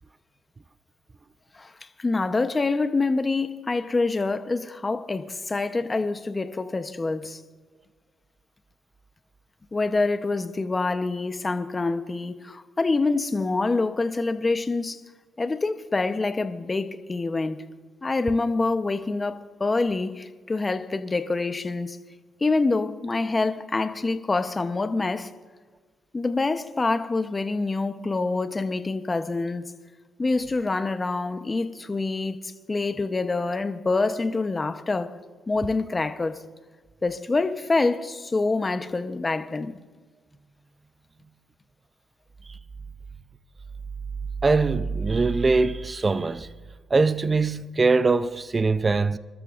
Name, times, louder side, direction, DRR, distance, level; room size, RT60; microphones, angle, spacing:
voice 1, 1.5-7.4 9.7-15.0 15.4-17.7 18.0-22.0 22.4-25.3 26.1-29.7 30.2-35.1 35.5-36.4 37.0-39.8, left 3 dB, 25° left, 0.9 m, -26 dB
voice 2, 44.4-46.5 46.9-49.2, right 3 dB, 25° right, 0.5 m, -22 dB
27.0 x 13.0 x 2.5 m
cardioid pair, 90°, 0 cm